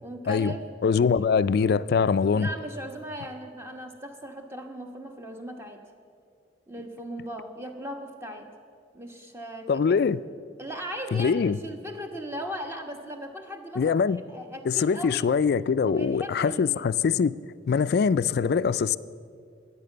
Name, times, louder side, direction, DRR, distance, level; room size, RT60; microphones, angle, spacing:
voice 1, 0.0-0.7 2.3-5.8 6.7-8.5 8.9-10.0 10.6-14.0 14.3-15.3 15.8-16.8, equal, 15° right, 1.1 m, -38 dB
voice 2, 0.8-2.5 9.7-10.2 11.1-11.6 13.8-14.2 14.6-17.3 17.7-19.0, left 6 dB, 55° left, 0.3 m, -23 dB
14.0 x 9.8 x 6.7 m
head